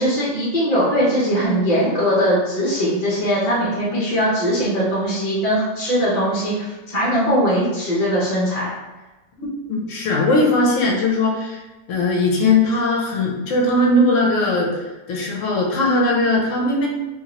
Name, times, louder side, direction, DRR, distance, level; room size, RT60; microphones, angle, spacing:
voice 1, 0.0-8.7, equal, 45° left, -7 dB, 0.5 m, -20 dB
voice 2, 9.4-11.6 11.9-14.8 15.1-16.9, left 2 dB, 65° left, -1 dB, 0.9 m, -19 dB
3.0 x 2.5 x 2.9 m, 1.1 s
omnidirectional pair, 1.7 m